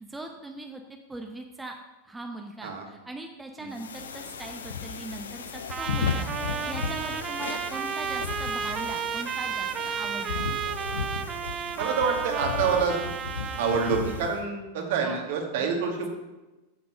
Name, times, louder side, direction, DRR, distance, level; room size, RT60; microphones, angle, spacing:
voice 1, 0.0-1.7 2.0-10.4 14.8-15.2 15.6-15.7, right 2 dB, 10° right, 4 dB, 0.8 m, -40 dB
sound 1, 3.7-14.4, left 5 dB, 70° left, 0.8 m, -35 dB
Trumpet, 5.7-14.3, right 8 dB, 25° right, 0.5 m, -33 dB
voice 2, 11.8-13.0 13.6-16.1, right 5 dB, 50° right, 2 dB, 2.0 m, -27 dB
9.2 x 7.8 x 5.5 m, 1.1 s
figure-of-eight pair, 90°, 0 cm